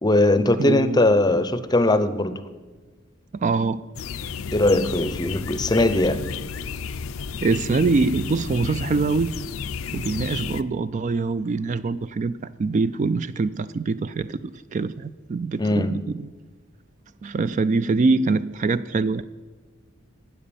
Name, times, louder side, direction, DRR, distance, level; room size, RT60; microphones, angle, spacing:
voice 1, 0.0-2.4 4.5-6.2 15.6-15.9, left 2 dB, 20° left, 13 dB, 0.6 m, -20 dB
voice 2, 0.6-1.0 3.3-3.8 7.4-9.4 9.9-16.3 17.2-19.2, right 3 dB, 35° right, 14 dB, 0.3 m, -24 dB
sound 1, 3.9-10.6, left 5 dB, 80° left, 0.5 m, -32 dB
12.5 x 8.9 x 6.9 m, 1.4 s
head